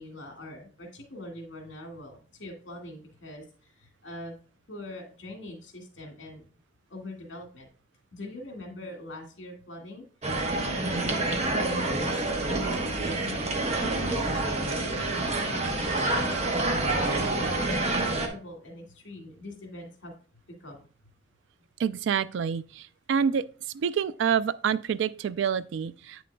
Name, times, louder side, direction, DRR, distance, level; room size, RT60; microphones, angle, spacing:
voice 1, 0.0-4.3 4.7-6.4 6.9-7.7 8.1-16.6 17.1-20.1 20.6-20.9, left 1 dB, 75° left, 1.9 m, -43 dB
sound 1, 10.2-18.3, right 2 dB, 35° right, 1.0 m, -27 dB
voice 2, 21.8-23.4 23.7-26.2, right 7 dB, 75° right, 0.3 m, -27 dB
8.3 x 6.1 x 2.2 m
head